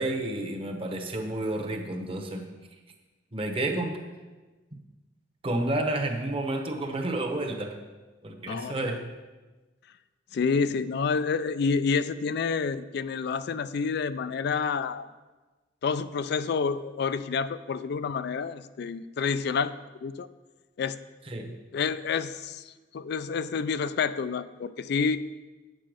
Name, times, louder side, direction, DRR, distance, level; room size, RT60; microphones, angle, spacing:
voice 1, 0.0-2.5 3.3-4.0 5.4-7.8 8.2-9.1 21.3-21.5, right 1 dB, 30° right, 3 dB, 1.0 m, -30 dB
voice 2, 8.5-9.0 10.3-15.1 15.8-19.7 20.0-20.3 20.8-21.0 21.7-22.6 22.9-25.2, left 5 dB, 60° left, 13 dB, 0.4 m, -28 dB
8.5 x 7.6 x 5.1 m, 1.2 s
head